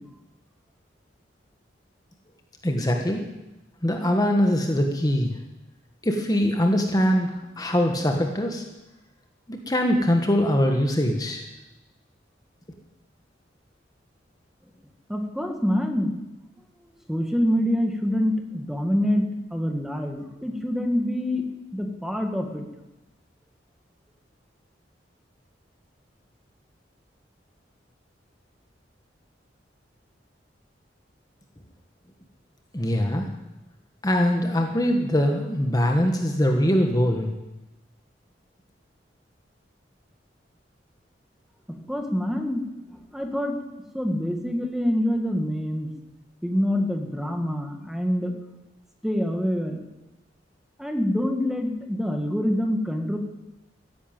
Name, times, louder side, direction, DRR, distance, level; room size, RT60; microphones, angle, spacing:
voice 1, 2.6-3.2 3.8-5.3 6.0-8.6 9.5-11.4 32.7-33.3 34.0-37.3, equal, 20° left, 3 dB, 1.4 m, -22 dB
voice 2, 15.1-16.2 17.1-22.7 41.9-42.6 43.1-43.6 43.9-45.9 46.4-48.4 49.0-49.8 50.8-53.2, equal, ahead, 4 dB, 1.8 m, -26 dB
15.0 x 10.5 x 9.1 m, 1.0 s
head